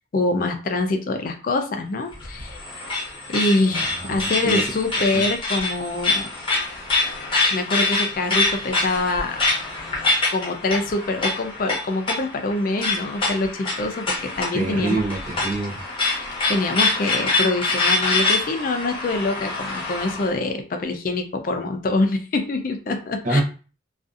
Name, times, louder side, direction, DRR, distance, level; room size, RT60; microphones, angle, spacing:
voice 1, 0.1-2.6 3.3-6.3 7.5-9.4 10.3-15.0 16.5-23.4, left 2 dB, 45° left, 6 dB, 0.4 m, -25 dB
sound 1, 2.1-20.3, left 3 dB, 25° left, 0.8 m, -25 dB
voice 2, 3.7-4.6 5.1-5.2 14.5-15.8 23.2-23.4, right 2 dB, 40° right, -2 dB, 0.7 m, -26 dB
2.5 x 2.3 x 2.4 m, 0.36 s
head